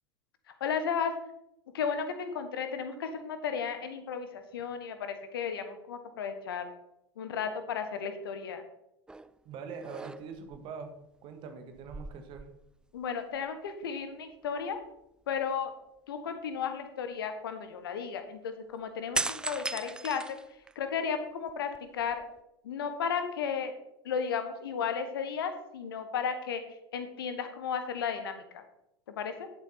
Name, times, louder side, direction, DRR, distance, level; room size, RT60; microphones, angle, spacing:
voice 1, 0.5-1.1 1.7-6.7 7.2-8.6 12.9-14.8 15.3-15.7 16.1-20.4 20.7-22.2 22.6-23.7 24.0-26.6 26.9-28.6 29.1-29.5, left 6 dB, 65° left, 8 dB, 1.5 m, -34 dB
sound 1, 9.1-9.4 9.8-10.6 11.8-13.0 13.3-13.5 19.1-21.0 21.5-22.4, right 2 dB, 5° right, 0.4 m, -37 dB
voice 2, 9.5-12.5, right 5 dB, 40° right, 6 dB, 1.8 m, -43 dB
11.0 x 8.1 x 4.3 m, 0.84 s
figure-of-eight pair, 80°, 13 cm